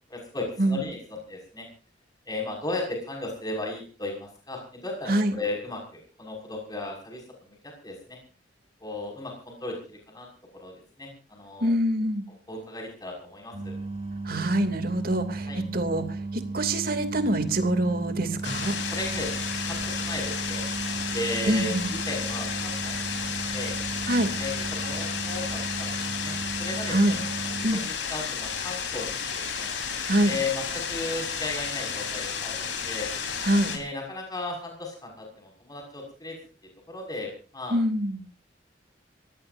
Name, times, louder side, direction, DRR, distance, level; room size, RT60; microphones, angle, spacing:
voice 1, 0.1-1.7 2.3-8.2 8.8-10.3 10.5-11.7 12.5-13.7 15.5-15.6 18.4-18.5 18.9-20.6 21.1-23.7 24.4-29.7 30.3-33.1 33.7-36.4 36.9-37.8, left 2 dB, 20° left, 1 dB, 6.0 m, -36 dB
voice 2, 11.6-12.2 14.3-16.1 16.5-18.7 21.5-21.9 24.1-24.3 26.9-27.2 27.6-27.8 30.1-30.3 33.4-33.8 37.7-38.2, right 1 dB, 55° right, 8 dB, 2.8 m, -25 dB
sound 1, 13.5-27.7, right 3 dB, 35° right, 7.4 m, -35 dB
sound 2, 18.4-33.8, left 6 dB, 75° left, 4.3 m, -32 dB
25.5 x 17.5 x 2.7 m, 0.37 s
head